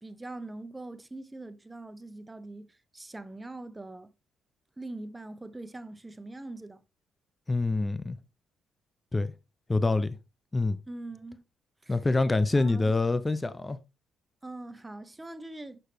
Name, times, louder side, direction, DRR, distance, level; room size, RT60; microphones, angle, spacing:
voice 1, 0.0-4.1 4.8-6.8 10.9-11.4 11.8-11.9 12.5-12.9 14.4-15.8, right 2 dB, 15° right, 0.8 m, -42 dB
voice 2, 7.5-8.2 9.1-9.3 9.7-10.2 10.5-10.8 11.9-13.8, left 3 dB, 20° left, 0.6 m, -26 dB
6.8 x 5.6 x 3.3 m
cardioid pair, 90°, 0 cm